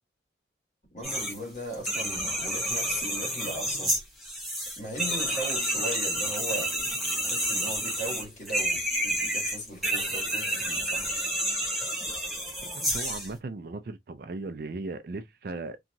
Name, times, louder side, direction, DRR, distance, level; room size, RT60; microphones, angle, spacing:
voice 1, 0.9-4.0 4.8-6.7 7.2-11.1, equal, 40° left, 1.5 m, -37 dB
sound 1, 1.0-1.4 1.7-13.3, right 1 dB, ahead, 0.8 m, -30 dB
voice 2, 12.6-15.8, right 3 dB, 55° right, 0.4 m, -37 dB
2.9 x 2.3 x 2.6 m
head